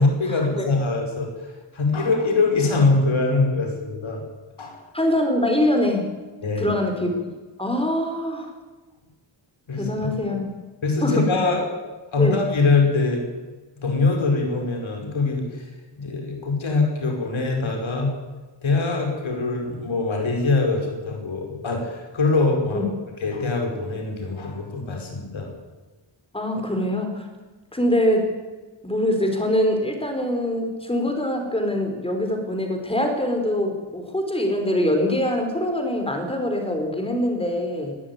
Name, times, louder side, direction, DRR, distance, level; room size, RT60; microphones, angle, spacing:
voice 1, 0.0-4.2 4.6-4.8 6.4-6.8 9.7-9.9 10.2-10.3 10.8-11.7 12.1-13.3 13.8-15.7 16.0-18.1 18.6-22.9 23.2-25.5, left 3 dB, 75° left, 2 dB, 5.2 m, -23 dB
voice 2, 4.9-6.1 6.6-7.3 7.6-8.5 9.7-10.5 11.0-11.3 12.2-12.4 22.7-22.8 26.3-27.3 27.7-28.4 28.8-38.0, left 1 dB, 10° left, 4 dB, 4.2 m, -23 dB
21.5 x 13.0 x 9.4 m, 1.2 s
wide cardioid pair, 155°, 48 cm